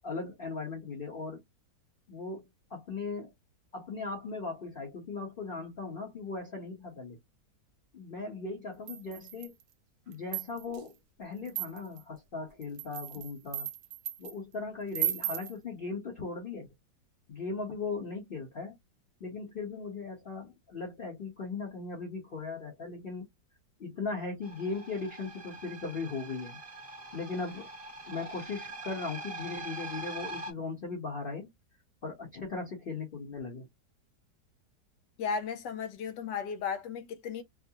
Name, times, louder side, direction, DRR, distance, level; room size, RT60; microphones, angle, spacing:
voice 1, 0.0-1.4 2.1-3.3 3.7-7.2 7.9-9.5 10.1-13.7 14.2-16.7 17.3-18.7 19.2-23.2 23.8-26.6 27.1-27.7 28.1-31.5 32.0-33.7, left 4 dB, 40° left, 1.0 m, -38 dB
sound 1, 8.9-9.6 10.1-10.8 11.5-12.0 12.6-14.3 14.9-15.5, right 13 dB, 80° right, 1.2 m, -35 dB
sound 2, 24.4-30.5, right 2 dB, 25° right, 0.8 m, -43 dB
voice 2, 35.2-37.4, left 6 dB, 80° left, 1.2 m, -35 dB
4.7 x 2.1 x 2.8 m
omnidirectional pair, 1.9 m